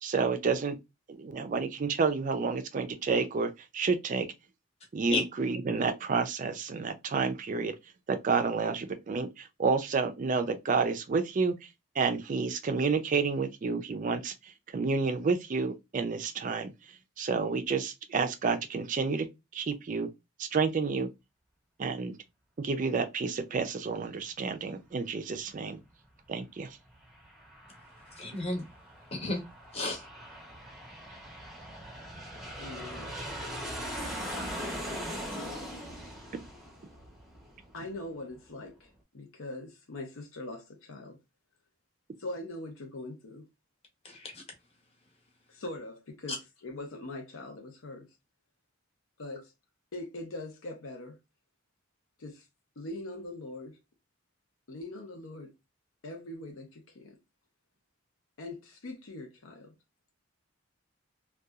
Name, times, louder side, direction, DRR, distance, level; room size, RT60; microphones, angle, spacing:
voice 1, 0.0-0.8 1.1-4.3 4.9-7.7 8.1-11.5 12.0-14.3 14.7-16.7 17.2-19.3 19.5-20.1 20.4-21.1 21.8-22.1 22.6-25.8 26.3-26.7, right 4 dB, 40° right, 0.3 m, -30 dB
Aircraft, 26.9-38.0, equal, ahead, 0.6 m, -41 dB
voice 2, 28.2-28.7 29.1-29.4 29.7-30.0 44.0-44.4, left 2 dB, 30° left, 0.8 m, -32 dB
voice 3, 32.6-33.1 35.3-35.7 37.7-41.2 42.2-43.4 45.5-48.1 49.2-49.5 49.9-51.2 52.2-52.4 52.8-53.8 54.7-55.5 56.0-57.2 58.4-59.7, left 2 dB, 80° left, 0.6 m, -42 dB
2.7 x 2.2 x 2.3 m
head